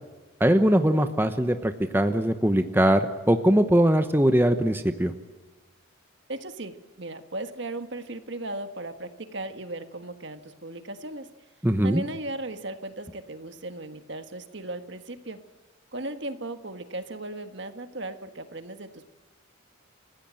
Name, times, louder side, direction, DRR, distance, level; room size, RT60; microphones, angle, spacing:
voice 1, 0.4-5.1 11.6-12.0, equal, 10° right, 8 dB, 0.9 m, -21 dB
voice 2, 6.3-11.3 11.8-15.4 15.9-19.1, right 2 dB, 60° right, 8 dB, 1.6 m, -36 dB
29.5 x 16.0 x 7.8 m, 1.3 s
head